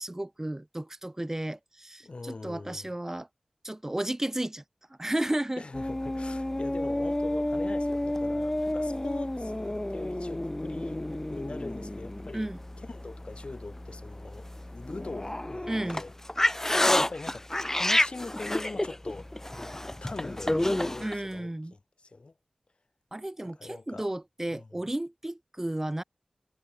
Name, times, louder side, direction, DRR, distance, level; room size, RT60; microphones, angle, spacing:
voice 1, 0.0-3.3 3.6-4.6 5.0-5.6 12.3-12.6 15.7-16.0 21.0-21.7 23.1-26.0, right 1 dB, 20° right, 1.2 m, -33 dB
voice 2, 2.0-2.9 5.6-12.5 12.8-14.5 14.7-16.1 17.0-19.3 20.0-22.3 23.5-24.1 24.5-24.7, left 3 dB, 60° left, 1.7 m, -42 dB
sound 1, 5.7-21.2, left 1 dB, 20° left, 1.2 m, -30 dB
wide cardioid pair, 75°, 2 cm